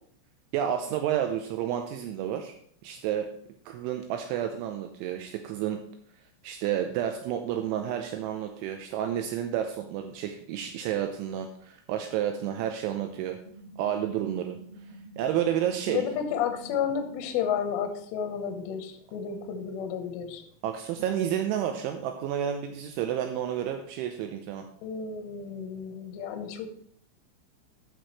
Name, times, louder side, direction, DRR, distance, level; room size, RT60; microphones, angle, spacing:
voice 1, 0.5-2.5 2.8-3.3 3.7-5.8 6.4-13.4 13.8-14.6 15.2-16.0 20.6-24.7, right 10 dB, 85° right, 5 dB, 2.8 m, -30 dB
sound 1, 13.4-17.3, right 1 dB, 55° left, 1.4 m, -48 dB
voice 2, 15.9-20.4 24.8-26.7, left 8 dB, 75° left, 6 dB, 2.7 m, -31 dB
14.5 x 6.2 x 3.1 m, 0.63 s
omnidirectional pair, 5.9 m